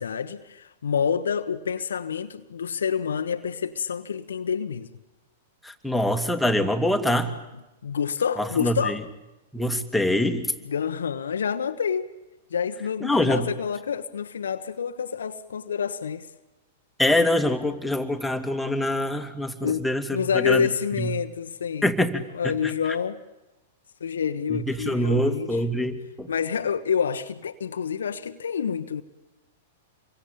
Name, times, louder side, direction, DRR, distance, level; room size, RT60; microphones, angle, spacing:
voice 1, 0.0-4.9 7.8-9.0 10.6-12.1 12.5-16.3 19.6-19.8 20.1-21.9 22.3-23.2 24.0-25.6 26.3-29.0, left 7 dB, 75° left, 1.2 m, -28 dB
voice 2, 5.6-7.3 8.4-9.0 9.5-10.5 13.0-13.5 17.0-20.7 21.0-21.1 21.8-22.2 22.6-22.7 24.5-26.3, left 1 dB, 5° left, 2.6 m, -24 dB
27.5 x 23.0 x 8.8 m
hypercardioid pair, 105°, 0 cm